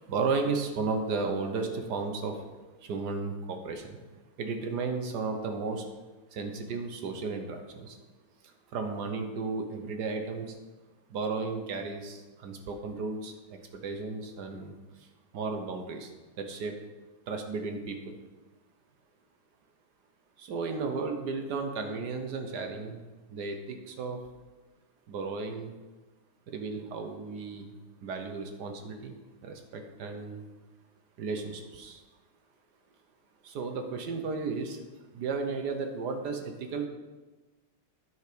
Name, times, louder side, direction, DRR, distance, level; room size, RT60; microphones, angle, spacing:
voice 1, 0.1-2.4 2.8-4.0 4.4-5.8 6.3-8.0 8.7-10.6 11.1-13.3 13.7-14.7 15.3-16.1 16.4-16.7 17.3-18.1 20.4-23.0 23.3-24.2 25.1-25.7 26.5-27.7 28.0-29.1 29.4-30.4 31.2-32.0 33.4-34.8 35.1-36.9, right 4 dB, 60° right, 5 dB, 1.2 m, -34 dB
9.4 x 5.6 x 5.1 m, 1.2 s
omnidirectional pair, 2.3 m